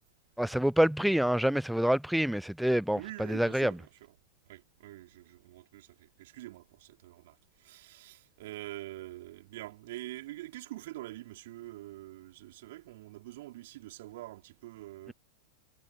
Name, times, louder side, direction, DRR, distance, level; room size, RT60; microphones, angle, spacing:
voice 1, 0.4-3.8, equal, ahead, 0.6 m, -27 dB
voice 2, 2.9-3.8 4.5-15.1, right 17 dB, 55° right, 4.7 m, -45 dB
figure-of-eight pair, 90°, 0 cm